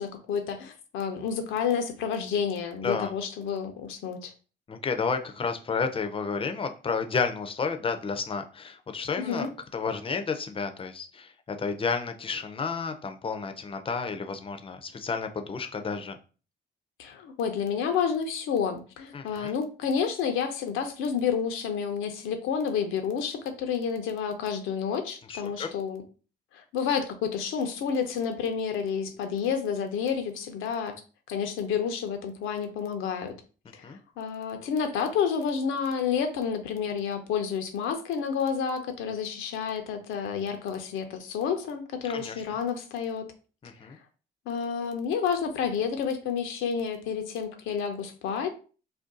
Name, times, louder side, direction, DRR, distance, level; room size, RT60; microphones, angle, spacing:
voice 1, 0.0-4.3 9.2-9.5 17.0-26.0 26.5-31.0 31.3-33.3 33.7-33.9 34.2-43.3 44.5-48.5, left 7 dB, 90° left, 0.6 m, -30 dB
voice 2, 2.8-3.1 4.7-16.2 19.1-19.5 25.3-25.7 33.8-34.0 42.0-42.4 43.6-44.0, left 5 dB, 25° left, 0.5 m, -31 dB
2.5 x 2.2 x 3.7 m
cardioid pair, 90°, 20 cm